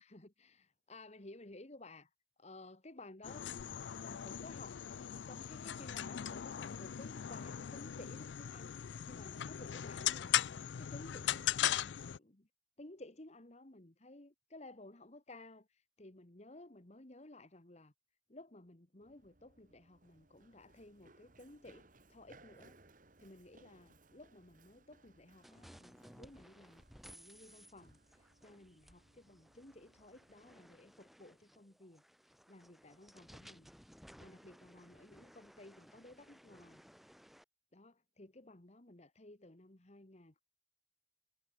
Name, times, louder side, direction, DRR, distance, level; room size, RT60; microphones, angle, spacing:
voice 1, 0.0-2.1 2.4-3.5 4.0-4.8 5.1-12.5 12.8-17.9 18.3-22.8 23.2-26.8 27.1-33.7 34.2-36.8 37.7-40.4, left 2 dB, 35° left, 1.6 m, -56 dB
sound 1, 3.2-12.2, left 10 dB, 80° left, 0.5 m, -38 dB
Run, 19.0-30.6, right 2 dB, 45° right, 2.5 m, -66 dB
sound 2, 25.4-37.4, equal, ahead, 1.7 m, -60 dB
head